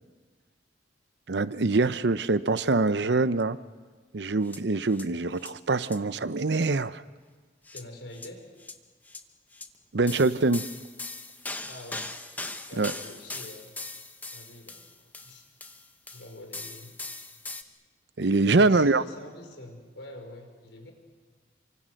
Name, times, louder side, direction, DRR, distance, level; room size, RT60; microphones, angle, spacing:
voice 1, 1.3-3.6 4.1-7.0 9.9-10.7 12.8-12.9 18.2-19.0, right 3 dB, 70° right, 15 dB, 0.7 m, -24 dB
sound 1, 4.4-4.6 4.9-5.1 5.4-5.5 5.8-6.0 7.7-7.8 8.1-8.3 8.6-8.7 9.1-9.2 9.5-9.7 10.1-17.6, left 2 dB, 10° left, 0.9 m, -40 dB
voice 2, 7.7-8.4 11.7-12.1 12.7-13.8 14.3-15.4 16.1-16.9 18.4-20.9, left 1 dB, 85° left, 4 dB, 5.1 m, -45 dB
28.0 x 24.5 x 6.5 m, 1.5 s
head